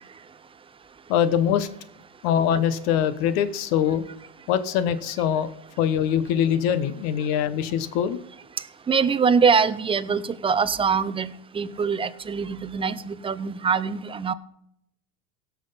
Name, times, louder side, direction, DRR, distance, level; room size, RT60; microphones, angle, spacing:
voice 1, 1.1-1.7 2.2-4.0 4.5-5.5 5.8-8.2, left 9 dB, 65° left, 13 dB, 1.2 m, -23 dB
voice 2, 8.9-14.3, right 6 dB, 15° right, 12 dB, 0.5 m, -23 dB
17.0 x 6.3 x 4.0 m, 0.77 s
supercardioid pair, 110°, 44 cm